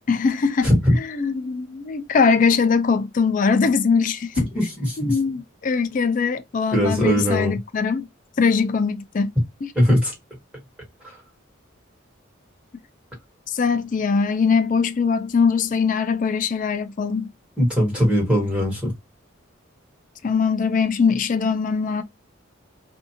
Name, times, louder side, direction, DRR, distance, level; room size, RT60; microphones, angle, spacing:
voice 1, 0.1-4.5 5.0-8.1 8.4-9.3 9.6-9.7 13.5-17.3 20.2-22.0, left 5 dB, 40° left, 0.4 m, -21 dB
voice 2, 0.6-0.9 4.4-5.1 6.7-7.6 9.7-10.1 11.0-11.2 17.6-18.9, equal, 5° right, 1.5 m, -20 dB
2.6 x 2.4 x 2.7 m
head